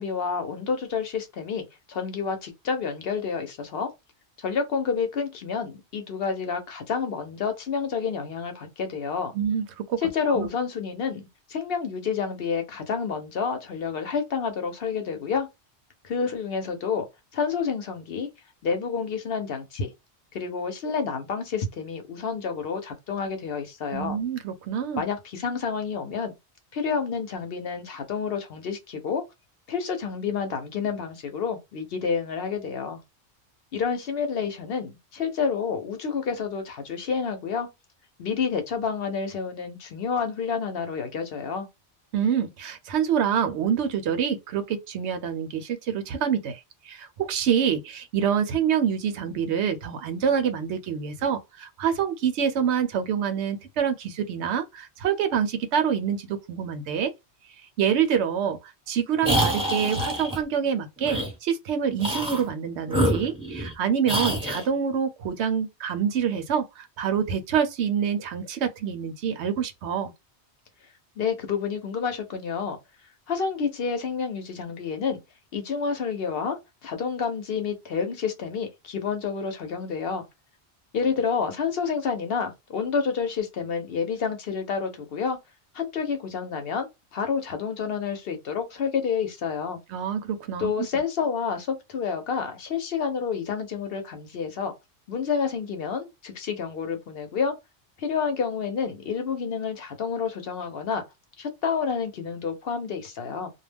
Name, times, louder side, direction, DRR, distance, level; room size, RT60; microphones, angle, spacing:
voice 1, 0.0-3.9 4.4-9.3 10.0-11.2 11.5-15.5 16.0-17.1 17.3-18.3 18.6-19.9 20.3-24.2 25.0-26.4 26.7-29.2 29.7-33.0 33.7-37.7 38.2-41.7 71.2-72.8 73.3-75.2 75.5-80.3 80.9-85.4 85.7-89.8 90.6-94.7 95.1-97.6 98.0-101.0 101.4-103.5, left 6 dB, 65° left, 0.9 m, -29 dB
voice 2, 9.3-10.0 10.2-10.5 23.9-25.0 42.1-57.1 57.8-70.1 89.9-90.7, right 8 dB, 80° right, 0.9 m, -26 dB
sound 1, 59.2-60.4 61.0-61.3 62.0-62.5 62.9-63.7 64.1-64.7, equal, 5° right, 0.9 m, -26 dB
2.3 x 2.1 x 3.3 m
omnidirectional pair, 1.2 m